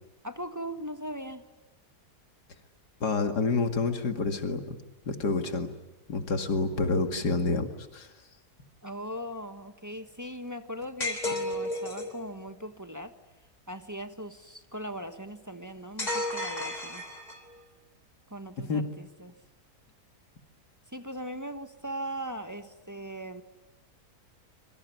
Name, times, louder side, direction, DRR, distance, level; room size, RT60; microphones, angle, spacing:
voice 1, 0.2-1.4 8.8-13.1 13.7-17.0 18.3-19.3 20.9-23.4, equal, 10° right, 8 dB, 1.3 m, -39 dB
voice 2, 3.0-4.8 5.1-5.7 6.1-8.1 18.6-18.9, left 3 dB, 85° left, 7 dB, 2.7 m, -28 dB
sound 1, 11.0-12.2 16.0-17.6, left 1 dB, 25° left, 3.4 m, -32 dB
26.5 x 23.5 x 9.5 m, 1.0 s
omnidirectional pair, 1.7 m